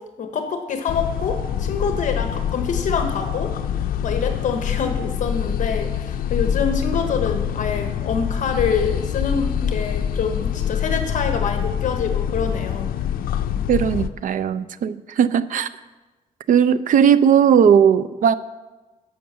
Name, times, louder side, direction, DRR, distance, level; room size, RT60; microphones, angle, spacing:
voice 1, 0.2-3.5 4.0-12.9, left 5 dB, 60° left, 6 dB, 1.0 m, -26 dB
sound 1, 0.9-14.1, left 9 dB, 80° left, 0.5 m, -25 dB
voice 2, 13.7-15.7 16.5-18.3, right 8 dB, 65° right, 15 dB, 0.5 m, -17 dB
11.0 x 6.6 x 6.8 m, 1.2 s
wide cardioid pair, 165°, 15 cm